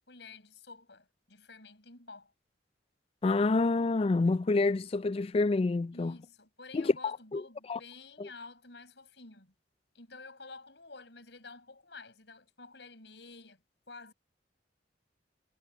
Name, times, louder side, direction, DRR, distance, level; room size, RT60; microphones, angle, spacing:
voice 1, 0.1-2.3 4.8-4.9 5.9-9.5 9.9-14.1, left 3 dB, 75° left, 5.8 m, -51 dB
voice 2, 3.2-6.1 6.7-6.9 7.3-7.4 7.7-7.8 8.2-8.3, left 3 dB, 35° left, 0.3 m, -27 dB
head